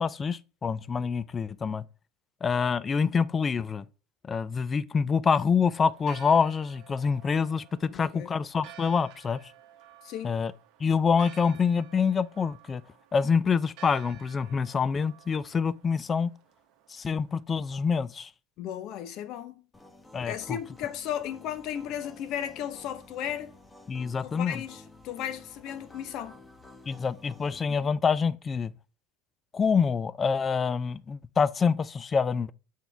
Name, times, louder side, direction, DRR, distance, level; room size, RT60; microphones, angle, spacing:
voice 1, 0.0-1.8 2.4-3.9 4.2-9.4 10.2-10.5 10.8-12.8 13.1-16.3 16.9-18.3 20.1-20.6 23.9-24.6 26.9-28.7 29.5-32.5, left 6 dB, 25° left, 0.4 m, -26 dB
Church bell, 5.9-17.4, right 11 dB, 60° right, 1.0 m, -53 dB
voice 2, 7.9-8.3 10.0-10.4 18.6-19.7 20.2-23.5 24.2-26.4 27.7-27.9, left 10 dB, 55° left, 0.9 m, -35 dB
sound 1, 19.7-27.6, left 2 dB, 10° left, 0.9 m, -51 dB
7.1 x 4.5 x 3.3 m
supercardioid pair, 110°, 0 cm